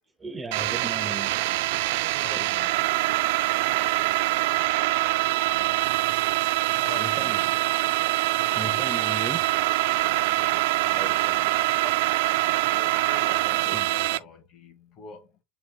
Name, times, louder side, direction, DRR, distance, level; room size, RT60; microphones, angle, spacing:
voice 1, 0.2-1.4 7.0-7.4 8.5-9.5 11.0-11.1 11.8-11.9 13.5-13.9, right 2 dB, 15° right, 0.7 m, -36 dB
sound 1, 0.5-14.2, right 18 dB, 75° right, 0.3 m, -24 dB
voice 2, 2.2-3.2 5.4-6.5 6.8-7.5 8.5-9.1 10.1-11.7 12.7-15.4, left 4 dB, 45° left, 1.4 m, -45 dB
7.6 x 2.9 x 2.2 m
supercardioid pair, 135°, 0 cm